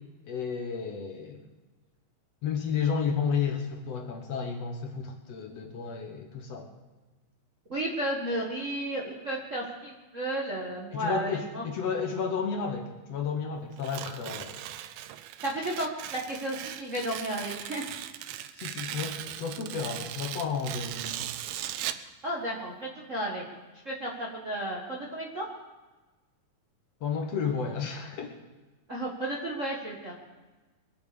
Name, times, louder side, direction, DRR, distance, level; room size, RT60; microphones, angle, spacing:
voice 1, 0.3-1.4 2.4-6.7 10.9-14.6 18.6-21.3 27.0-28.3, left 6 dB, 60° left, 3 dB, 2.1 m, -32 dB
voice 2, 7.7-11.6 15.4-17.8 22.2-23.4 23.8-25.4 28.9-30.1, right 1 dB, 35° right, -2 dB, 1.3 m, -33 dB
Tearing, 13.8-22.1, right 12 dB, 90° right, 2.3 m, -38 dB
23.0 x 7.8 x 6.9 m, 1.2 s
omnidirectional pair, 3.7 m